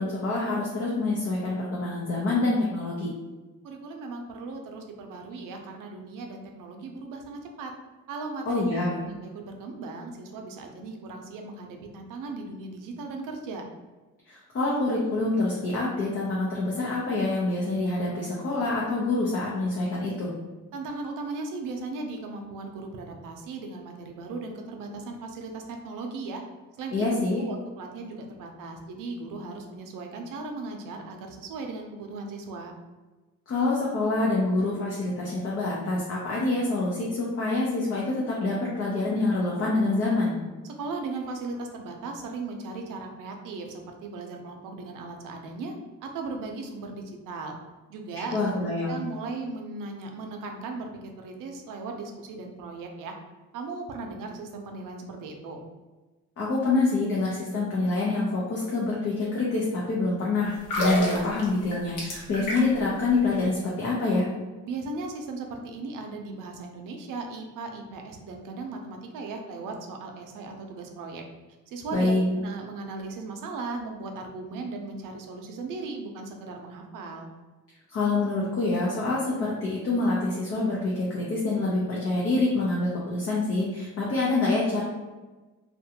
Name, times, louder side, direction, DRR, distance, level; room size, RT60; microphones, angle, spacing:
voice 1, 0.0-3.1 8.5-9.0 14.3-20.3 26.9-27.4 33.5-40.3 48.3-49.0 56.4-64.3 71.9-72.2 77.9-84.8, left 2 dB, 45° left, -5 dB, 0.6 m, -26 dB
voice 2, 3.6-7.7 8.1-8.6 9.0-13.6 20.7-26.4 26.8-32.7 40.6-45.7 46.0-47.6 47.9-48.5 48.9-53.2 53.5-55.6 64.6-71.2 71.7-77.3, right 3 dB, 85° right, 3 dB, 0.5 m, -37 dB
sound 1, 60.5-62.9 63.2-63.4, equal, 70° left, 0.9 m, -30 dB
2.5 x 2.1 x 2.8 m, 1.2 s
cardioid pair, 120°, 32 cm